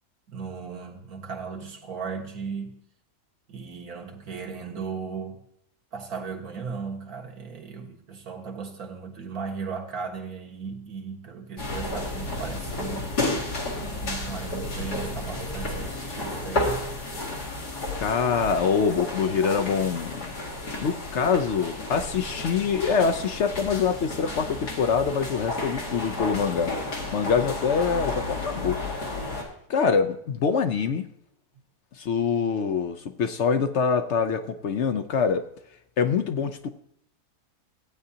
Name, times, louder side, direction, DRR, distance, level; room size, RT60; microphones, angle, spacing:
voice 1, 0.3-2.8 3.5-5.5 5.9-13.2 13.8-16.9, right 5 dB, 70° right, 2.0 m, -36 dB
sound 1, 11.6-29.4, left 2 dB, 90° left, 2.9 m, -32 dB
voice 2, 18.0-20.2 20.8-26.7 27.1-28.8 29.7-31.1 32.0-35.4 36.0-36.7, left 6 dB, 60° left, 0.8 m, -25 dB
16.5 x 9.1 x 2.8 m
omnidirectional pair, 1.7 m